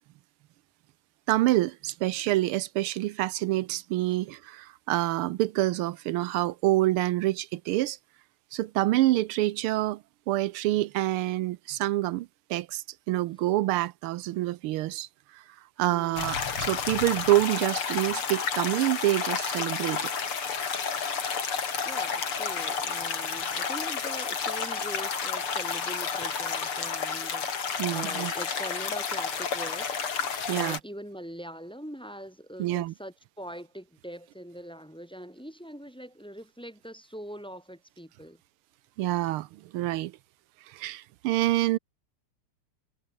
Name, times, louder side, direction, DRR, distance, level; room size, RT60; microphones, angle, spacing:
voice 1, 1.3-8.0 8.5-10.0 10.3-15.1 15.3-15.4 15.8-20.1 27.8-28.3 30.5-30.8 32.6-32.9 39.0-40.1 40.7-41.8, right 16 dB, 85° right, 1.6 m, -27 dB
sound 1, 16.2-30.8, left 6 dB, 85° left, 3.7 m, -31 dB
voice 2, 21.8-38.4, equal, ahead, 4.1 m, -42 dB
omnidirectional pair, 2.4 m